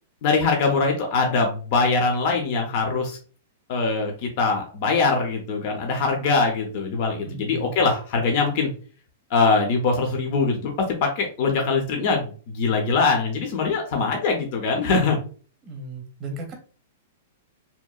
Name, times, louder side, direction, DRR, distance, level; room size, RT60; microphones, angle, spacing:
voice 1, 0.2-3.2 3.7-8.7 9.3-15.2, left 4 dB, 45° left, 2 dB, 0.5 m, -22 dB
voice 2, 7.2-7.7 15.6-16.5, right 3 dB, 25° right, 3 dB, 0.7 m, -35 dB
2.7 x 2.0 x 2.3 m, 0.40 s
hypercardioid pair, 155°, 0 cm